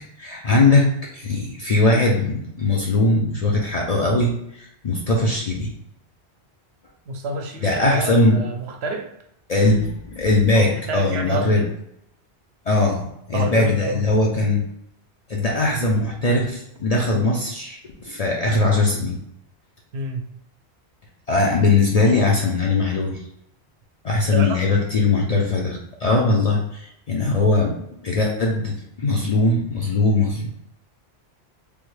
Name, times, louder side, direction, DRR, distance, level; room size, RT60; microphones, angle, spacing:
voice 1, 0.2-5.7 7.6-8.4 9.5-11.6 12.6-14.6 15.3-19.2 21.3-23.2 24.0-30.5, left 2 dB, 50° left, -2 dB, 0.5 m, -20 dB
voice 2, 7.1-9.1 10.5-11.7 13.3-14.1 19.9-20.2 24.3-24.6, right 2 dB, 75° right, 4 dB, 0.8 m, -28 dB
3.5 x 2.1 x 3.1 m, 0.74 s
omnidirectional pair, 1.1 m